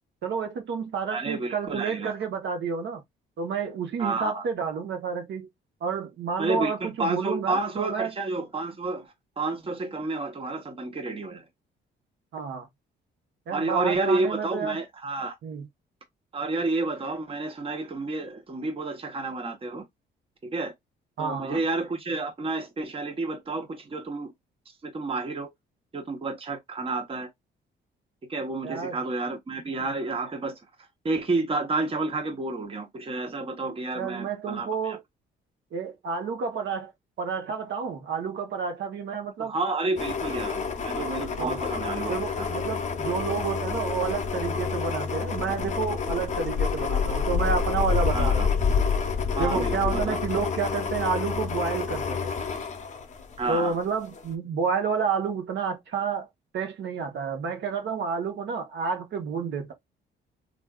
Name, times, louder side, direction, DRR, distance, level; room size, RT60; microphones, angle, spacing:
voice 1, 0.2-3.0 3.4-5.5 5.8-8.1 12.3-12.7 13.5-14.8 15.4-15.6 21.2-21.6 28.6-29.0 34.0-35.0 35.7-36.9 37.2-39.5 41.4-41.6 42.1-48.5 49.4-52.3 53.5-56.3 56.5-59.7, right 6 dB, 65° right, 1.0 m, -30 dB
voice 2, 1.1-2.1 4.0-4.4 6.4-11.4 13.5-15.3 16.3-19.8 20.4-20.7 21.2-24.3 24.8-25.5 25.9-27.3 28.3-30.6 31.0-35.0 39.4-42.5 48.1-48.5 49.3-50.2 53.4-53.8, right 3 dB, 30° right, 0.8 m, -30 dB
sound 1, 40.0-53.7 54.1-54.2, left 5 dB, 35° left, 0.7 m, -28 dB
3.5 x 2.5 x 2.3 m
cardioid pair, 90°, 20 cm